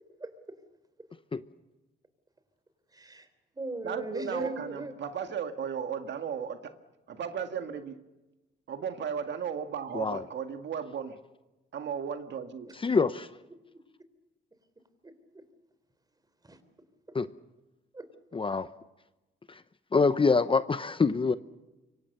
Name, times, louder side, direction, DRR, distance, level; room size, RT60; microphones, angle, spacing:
voice 1, 0.2-0.6 2.9-3.3 3.5-4.9 12.6-12.7 15.0-15.4 16.4-16.6 17.9-18.1, right 2 dB, 20° right, 11 dB, 3.8 m, -39 dB
voice 2, 3.8-6.8 7.1-8.0 8.7-11.2 11.7-12.7, right 7 dB, 65° right, 7 dB, 1.8 m, -35 dB
voice 3, 12.8-13.3 17.1-17.3 18.3-18.7 19.5-19.6 19.9-21.4, left 4 dB, 25° left, 13 dB, 0.8 m, -25 dB
26.0 x 24.0 x 6.7 m, 1.1 s
cardioid pair, 90°, 20 cm